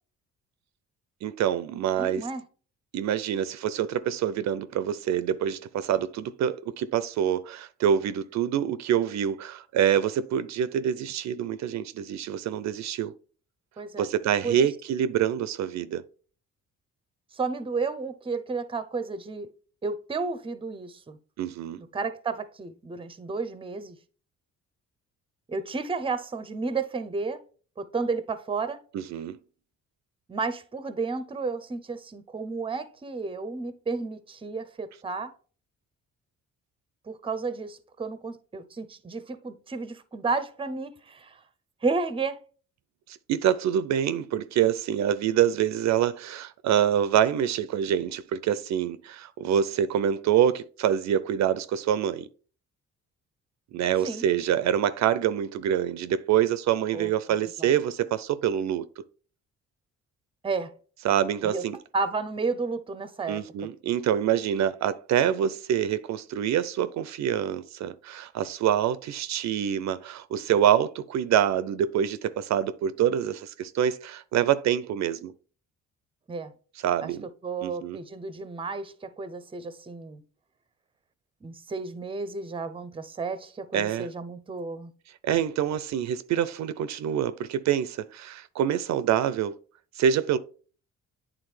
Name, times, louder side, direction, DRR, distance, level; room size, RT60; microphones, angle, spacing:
voice 1, 1.2-2.3 2.9-13.1 14.0-16.0 21.4-21.8 28.9-29.4 43.1-52.3 53.7-58.8 61.0-61.8 63.3-75.3 76.8-77.3 77.6-78.0 83.7-84.1 85.2-89.6 90.0-90.4, right 9 dB, 65° right, 0.4 m, -26 dB
voice 2, 2.0-2.4 13.8-14.1 14.4-14.7 17.3-19.5 19.8-21.2 21.8-24.0 25.5-27.4 27.8-28.8 30.3-35.3 37.1-41.4 41.8-42.4 54.0-54.2 56.9-57.1 57.6-57.7 60.4-60.7 61.4-61.6 61.9-63.7 76.3-76.5 77.0-77.1 77.4-80.2 81.4-84.9, right 4 dB, 20° right, 0.6 m, -32 dB
8.8 x 3.6 x 3.2 m
cardioid pair, 90°, 30 cm